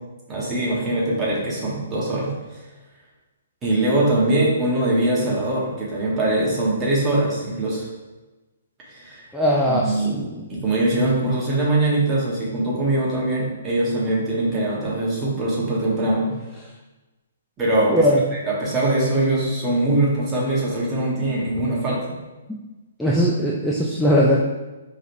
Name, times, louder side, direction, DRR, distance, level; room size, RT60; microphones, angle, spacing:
voice 1, 0.3-2.3 3.6-7.9 8.9-9.2 9.7-10.2 10.5-16.3 17.6-17.9 18.4-22.2, right 2 dB, 20° right, -5 dB, 1.3 m, -22 dB
voice 2, 9.3-10.4 17.9-18.2 22.5-22.6 23.0-24.4, equal, ahead, -5 dB, 0.4 m, -20 dB
4.7 x 3.2 x 2.7 m, 1.1 s
hypercardioid pair, 145°, 0 cm